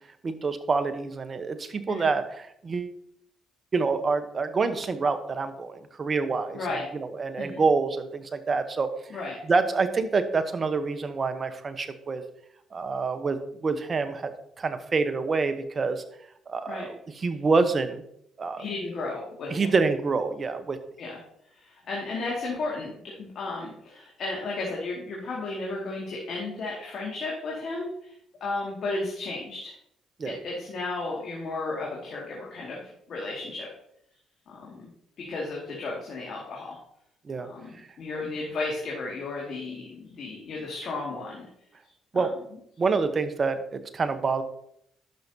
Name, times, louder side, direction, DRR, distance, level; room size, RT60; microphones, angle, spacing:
voice 1, 0.2-2.9 3.7-8.9 9.4-12.2 12.7-14.3 14.6-16.0 16.5-18.0 18.4-18.7 19.5-20.8 30.2-30.4 37.3-37.5 37.8-37.9 38.2-38.3 42.1-42.3 42.8-44.4, right 4 dB, 45° right, 10 dB, 1.0 m, -27 dB
voice 2, 18.6-19.7 21.0-21.2 21.6-28.1 28.4-29.7 30.2-33.7 34.5-34.9 35.2-36.8 37.4-41.5 42.1-42.3, left 3 dB, 60° left, -3 dB, 2.1 m, -34 dB
12.0 x 5.9 x 2.8 m, 0.74 s
supercardioid pair, 60°, 0 cm